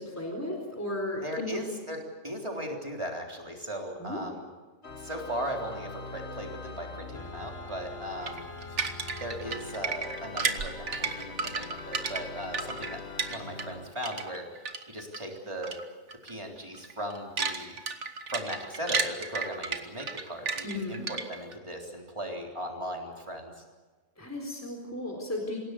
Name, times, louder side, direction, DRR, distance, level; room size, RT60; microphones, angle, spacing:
voice 1, 0.0-1.6 4.0-4.2 20.6-21.1 24.2-25.6, left 1 dB, 10° left, 1 dB, 4.2 m, -35 dB
voice 2, 1.2-4.5 5.0-8.5 9.2-13.0 13.3-14.5 14.9-15.8 16.2-17.8 18.3-23.6, equal, 25° right, 0 dB, 3.8 m, -37 dB
Organ, 4.8-13.9, left 4 dB, 60° left, 1.9 m, -43 dB
sound 1, 8.3-13.8 14.0-15.2 15.6-15.8 16.1-16.3 16.7-21.5, right 5 dB, 75° right, 1.7 m, -33 dB
27.0 x 17.0 x 8.3 m, 1.3 s
omnidirectional pair, 1.2 m